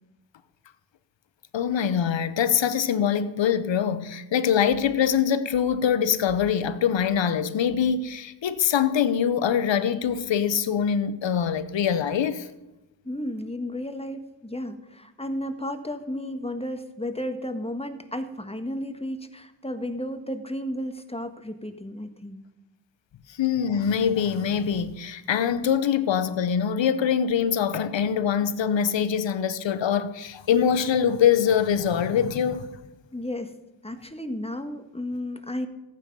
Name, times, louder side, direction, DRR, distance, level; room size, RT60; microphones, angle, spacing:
voice 1, 1.5-12.5 23.4-32.7, left 8 dB, 75° left, 1.0 m, -23 dB
voice 2, 13.0-22.4 33.1-33.5 33.8-35.7, left 1 dB, 15° left, 1.6 m, -33 dB
14.5 x 9.2 x 5.5 m
cardioid pair, 50°, 45 cm